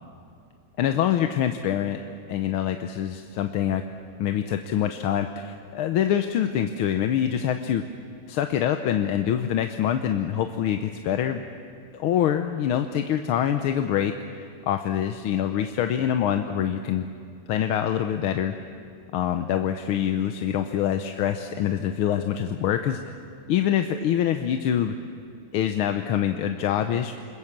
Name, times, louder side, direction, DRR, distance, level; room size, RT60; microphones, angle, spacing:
voice 1, 0.8-2.0 2.3-3.8 4.2-7.8 8.3-11.4 11.9-17.0 17.5-18.5 19.1-23.0 23.5-25.0 25.5-27.1, left 10 dB, 85° left, 7 dB, 1.7 m, -25 dB
28.0 x 21.5 x 7.3 m, 2.5 s
omnidirectional pair, 2.3 m